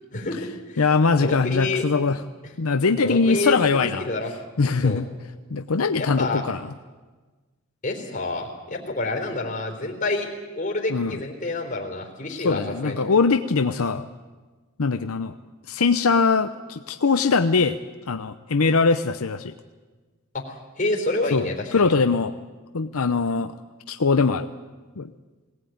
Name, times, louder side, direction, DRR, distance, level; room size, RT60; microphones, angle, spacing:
voice 1, 0.1-0.8 1.2-1.8 3.0-4.3 4.8-5.0 6.0-6.4 7.8-10.3 10.6-13.0 20.3-21.9, left 2 dB, 40° left, 1 dB, 3.9 m, -28 dB
voice 2, 0.8-2.2 2.6-4.0 4.6-5.1 5.5-6.7 10.9-11.2 12.4-14.1 14.8-15.3 15.7-17.8 18.1-19.5 21.3-22.3 22.7-23.5 23.9-24.5 25.0-25.1, left 4 dB, 85° left, 9 dB, 0.7 m, -21 dB
21.5 x 17.5 x 9.3 m, 1.3 s
head